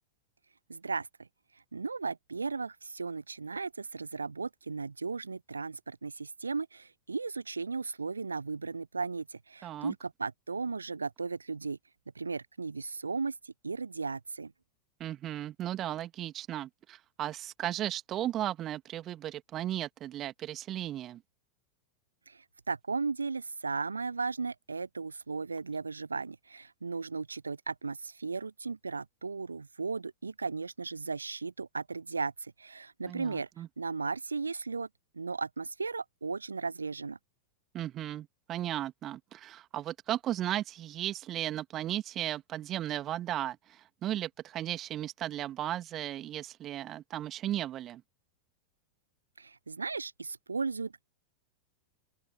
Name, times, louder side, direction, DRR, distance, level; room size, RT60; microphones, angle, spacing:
voice 1, 0.7-1.3 1.7-11.8 12.2-14.5 22.3-33.5 33.8-34.9 35.1-37.2 49.4-51.0, right 4 dB, 75° right, 0.5 m, -36 dB
voice 2, 9.6-9.9 15.0-21.2 33.1-33.7 37.7-48.0, right 12 dB, 30° right, 2.1 m, -35 dB
open air
figure-of-eight pair, 90°, 0 cm